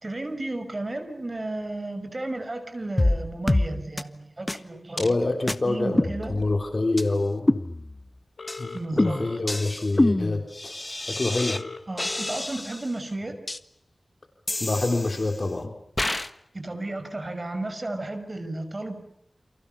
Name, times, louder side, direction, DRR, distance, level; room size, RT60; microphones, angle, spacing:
voice 1, 0.0-5.2 5.6-6.5 8.7-9.2 11.9-13.4 16.5-19.0, right 2 dB, 35° right, 8 dB, 5.7 m, -33 dB
sound 1, 3.0-3.2 3.5-3.7 4.0-4.1 4.5-4.6 5.0-5.1 5.5-5.6 6.0-6.6 7.0-7.1 7.5-8.1 8.5-8.6 9.0-11.6 12.0-12.9 13.5-13.6 14.5-15.4 16.0-16.3, left 1 dB, 25° left, 1.4 m, -26 dB
voice 2, 5.0-7.5 8.6-10.7 11.1-11.6 14.6-15.7, left 2 dB, 45° left, 5 dB, 3.2 m, -26 dB
Telephone, 8.4-9.4 11.4-12.4, left 3 dB, 80° left, 3.7 m, -39 dB
29.5 x 28.5 x 6.9 m, 0.66 s
wide cardioid pair, 90°, 0 cm